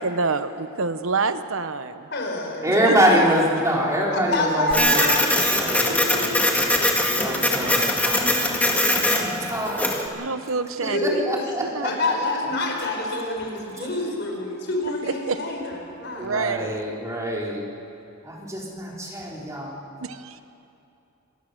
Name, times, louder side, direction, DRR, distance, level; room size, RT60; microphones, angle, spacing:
voice 1, 0.0-2.1 2.8-2.9 10.1-11.2 11.6-12.0 13.8-13.9 15.1-15.4 16.1-16.8 20.0-20.4, right 4 dB, 80° right, 11 dB, 0.9 m, -27 dB
voice 2, 2.1-3.2 4.1-6.4 6.9-7.7 10.9-11.2 11.8-16.3, left 2 dB, 60° left, 1 dB, 4.8 m, -28 dB
voice 3, 2.6-6.0 7.1-9.9 10.8-11.9 16.2-17.6 18.2-19.8, equal, 15° right, -3 dB, 3.6 m, -25 dB
Printer, 4.7-10.1, left 1 dB, 5° left, 2.0 m, -22 dB
26.5 x 19.0 x 6.6 m, 2.9 s
head